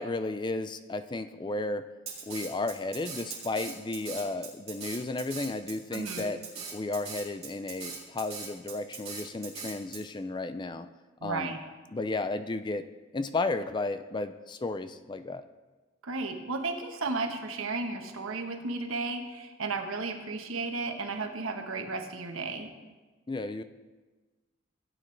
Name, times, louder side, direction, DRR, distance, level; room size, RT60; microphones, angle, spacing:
voice 1, 0.0-1.9 2.3-6.4 6.7-10.9 11.2-11.5 11.9-12.8 13.1-15.4 23.3-23.6, left 2 dB, 20° left, 11 dB, 0.4 m, -33 dB
Drum kit, 2.1-10.0, right 6 dB, 30° right, 2.5 m, -40 dB
voice 2, 5.9-6.3 11.2-11.6 16.0-22.7, right 3 dB, 90° right, 4 dB, 1.2 m, -34 dB
16.0 x 8.8 x 3.3 m, 1.3 s
head